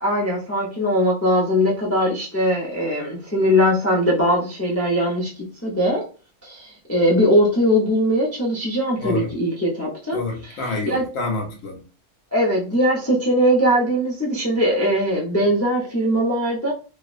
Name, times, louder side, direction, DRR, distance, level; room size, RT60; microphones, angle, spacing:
voice 1, 0.0-5.3 5.6-6.0 6.4-10.2 10.9-11.0 12.3-16.7, equal, 20° left, 0.4 m, -20 dB
voice 2, 9.0-9.4 10.1-11.8, left 3 dB, 80° left, 1.1 m, -27 dB
2.7 x 2.0 x 2.4 m
omnidirectional pair, 1.4 m